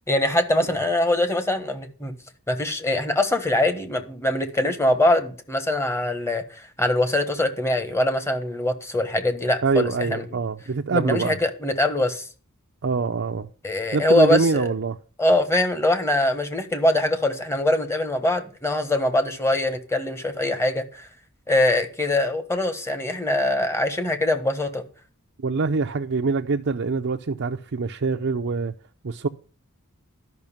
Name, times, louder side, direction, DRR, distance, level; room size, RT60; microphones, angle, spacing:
voice 1, 0.1-2.1 2.5-10.2 10.9-12.2 13.6-14.6 15.2-21.1 21.5-24.8, left 1 dB, 10° left, 1.4 m, -23 dB
voice 2, 9.6-11.4 12.8-13.5 13.9-15.0 25.4-28.7 29.0-29.3, right 4 dB, 55° right, 0.6 m, -24 dB
12.0 x 6.0 x 7.2 m
head